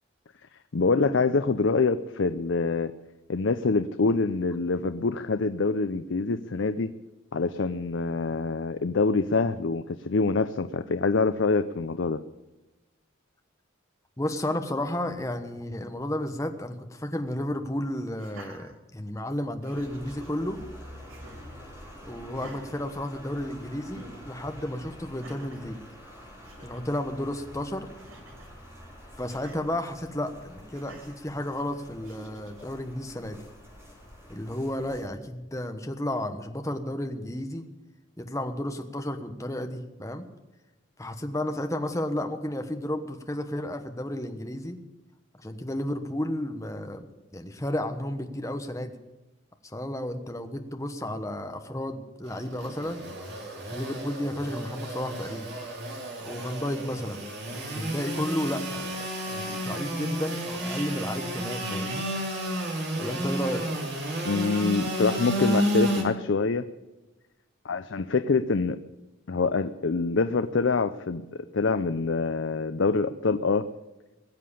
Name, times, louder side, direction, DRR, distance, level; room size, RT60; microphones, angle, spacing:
voice 1, 0.7-2.9 3.3-6.9 7.3-12.2 64.2-66.7 67.6-68.8 69.3-71.2 71.5-73.7, left 4 dB, 60° left, 11 dB, 0.5 m, -25 dB
voice 2, 14.2-20.6 22.0-25.8 26.6-27.9 29.2-33.4 34.3-37.6 38.2-40.3 41.0-44.8 45.4-47.1 47.3-48.9 49.7-53.0 53.7-55.5 56.2-57.2 57.5-62.1 63.0-63.7, left 1 dB, 15° left, 6 dB, 1.1 m, -32 dB
Laughter, 18.1-19.2 19.6-20.3 21.1-21.6 22.3-23.5 23.9-24.2 25.1-25.7 26.2-26.3 26.4-26.8 28.0-28.5 29.3-29.6 30.7-31.2 32.0-32.6, right 2 dB, 75° right, 2.8 m, -49 dB
sound 1, 19.7-35.0, equal, 10° right, 5.2 m, -47 dB
Engine / Sawing, 52.2-66.0, right 1 dB, 50° right, 3.0 m, -31 dB
20.0 x 7.6 x 8.6 m, 1.1 s
head